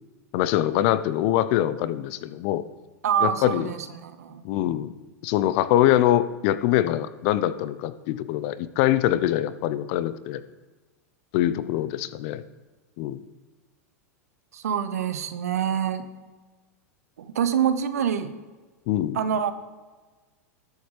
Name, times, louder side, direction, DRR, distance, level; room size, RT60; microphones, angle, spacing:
voice 1, 0.3-2.6 3.2-3.7 4.4-4.9 5.2-10.4 11.3-12.4 13.0-13.2 18.9-19.2, left 13 dB, 50° left, 15 dB, 0.6 m, -23 dB
voice 2, 3.0-4.4 14.5-16.0 17.2-18.3 19.1-19.5, right 8 dB, 65° right, 10 dB, 1.0 m, -26 dB
20.0 x 7.1 x 3.3 m, 1.3 s
figure-of-eight pair, 90°, 9 cm